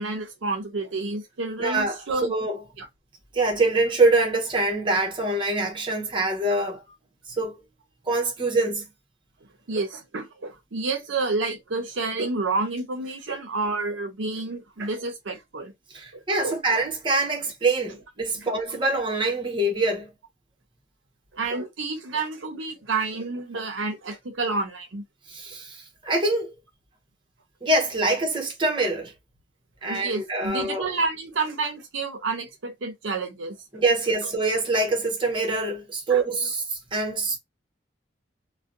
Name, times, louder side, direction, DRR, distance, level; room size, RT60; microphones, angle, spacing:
voice 1, 0.0-2.3 2.8-2.9 9.7-15.7 16.4-16.5 21.3-25.0 29.9-33.6 36.1-36.2, right 3 dB, 75° right, 0.6 m, -29 dB
voice 2, 1.6-2.6 3.3-6.8 7.3-7.5 8.1-8.9 15.9-20.1 25.3-26.5 27.6-29.1 29.8-30.9 33.7-37.4, right 2 dB, 25° right, 0.8 m, -24 dB
2.5 x 2.1 x 2.5 m
head